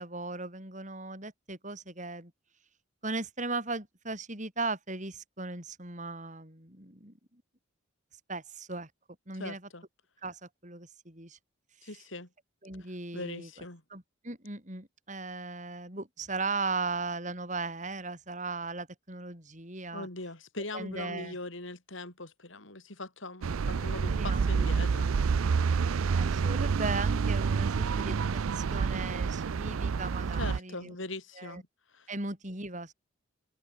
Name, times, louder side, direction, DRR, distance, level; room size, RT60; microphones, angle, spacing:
voice 1, 0.0-2.3 3.0-7.4 8.3-8.9 9.3-9.7 10.2-11.4 11.8-11.9 12.6-13.5 13.9-20.1 20.7-21.4 23.6-23.8 24.1-24.4 26.0-31.0 31.4-31.6 32.1-32.9, right 3 dB, 35° right, 6.6 m, -37 dB
voice 2, 9.4-9.8 11.8-12.3 13.1-13.8 19.9-25.1 30.4-31.6 31.9-32.1, left 2 dB, 70° left, 4.8 m, -41 dB
sound 1, 23.4-30.6, right 5 dB, 90° right, 0.5 m, -28 dB
head